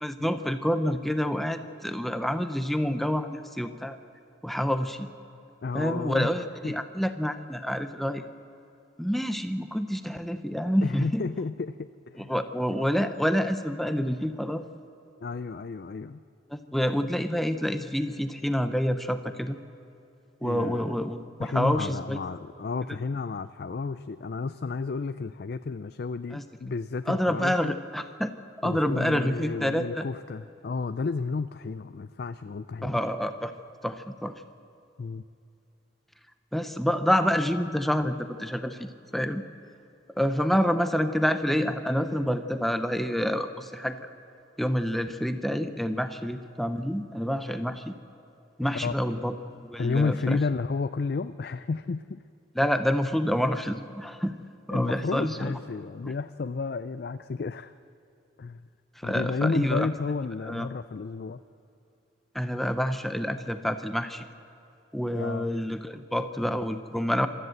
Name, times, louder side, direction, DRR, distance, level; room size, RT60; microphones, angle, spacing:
voice 1, 0.0-4.0 4.4-5.1 5.7-8.3 9.0-11.3 12.2-14.6 16.5-19.6 20.4-22.2 22.9-23.0 26.3-26.4 27.1-28.3 28.6-30.1 32.8-33.5 33.8-34.3 36.5-39.4 40.2-44.0 44.6-47.9 48.6-50.4 52.6-54.3 54.7-55.5 56.0-56.1 59.0-59.9 60.4-60.7 62.3-64.3 64.9-67.3, equal, ahead, 9 dB, 0.6 m, -28 dB
voice 2, 5.6-6.3 6.6-6.7 10.8-12.3 15.2-16.2 20.4-20.9 21.4-27.8 28.6-33.0 35.0-35.2 48.8-48.9 49.8-52.2 54.7-57.7 58.4-58.6 59.0-61.4 65.1-65.5, left 4 dB, 55° left, 11 dB, 0.4 m, -32 dB
26.5 x 13.5 x 7.9 m, 2.6 s
head